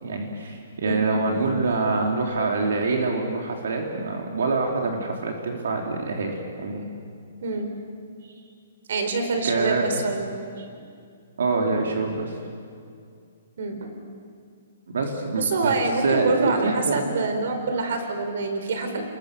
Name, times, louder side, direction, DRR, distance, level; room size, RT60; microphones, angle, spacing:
voice 1, 0.0-6.9 9.4-9.9 11.4-12.3 14.9-15.7 16.0-17.0, right 3 dB, 75° right, 1 dB, 3.4 m, -25 dB
voice 2, 8.9-10.7 13.6-13.9 15.4-19.0, right 3 dB, 55° right, 6 dB, 4.0 m, -26 dB
29.5 x 22.5 x 6.9 m, 2.3 s
hypercardioid pair, 175°, 0 cm